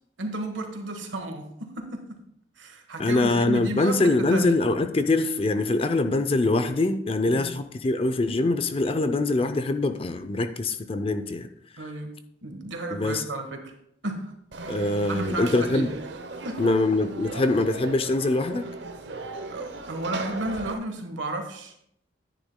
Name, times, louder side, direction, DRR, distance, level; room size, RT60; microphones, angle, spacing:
voice 1, 0.2-2.2 2.6-4.6 7.3-7.6 11.8-12.2 12.4-13.7 14.0-14.3 14.7-14.8 15.1-16.0 16.4-16.6 19.5-21.7, right 2 dB, 85° right, 5 dB, 1.4 m, -33 dB
voice 2, 3.0-11.5 12.9-13.2 14.7-15.9 16.6-18.7, left 2 dB, 30° left, 10 dB, 0.5 m, -24 dB
Conversation / Crowd, 14.5-20.7, right 3 dB, 70° right, 0.8 m, -37 dB
10.0 x 10.0 x 2.2 m, 0.72 s
head